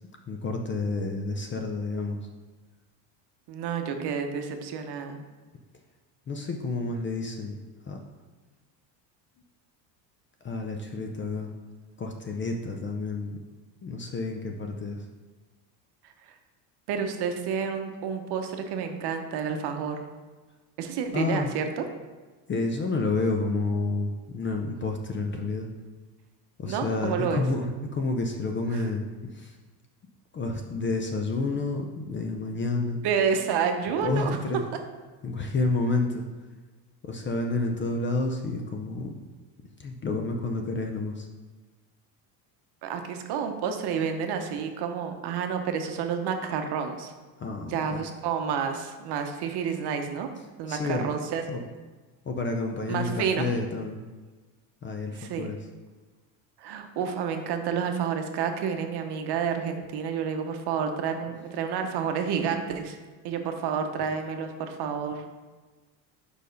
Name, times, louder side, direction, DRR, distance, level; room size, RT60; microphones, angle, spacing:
voice 1, 0.3-2.2 6.3-7.6 7.9-8.0 10.4-11.5 12.0-13.4 13.8-15.0 21.1-21.5 22.5-25.7 26.6-27.7 27.9-29.6 30.3-33.0 34.0-34.6 35.2-36.3 37.0-39.2 39.8-41.3 47.4-48.0 50.7-51.0 51.5-51.6 52.2-54.0 54.8-55.6, left 3 dB, 25° left, 3 dB, 0.5 m, -29 dB
voice 2, 3.5-5.2 16.9-20.0 20.8-21.8 26.7-27.4 28.7-28.8 33.0-34.4 42.8-47.1 47.7-50.3 50.6-51.4 52.9-53.5 55.2-55.5 56.6-63.0 63.2-65.2, right 7 dB, 50° right, 5 dB, 0.9 m, -29 dB
5.0 x 4.5 x 5.2 m, 1.3 s
supercardioid pair, 100°, 50 cm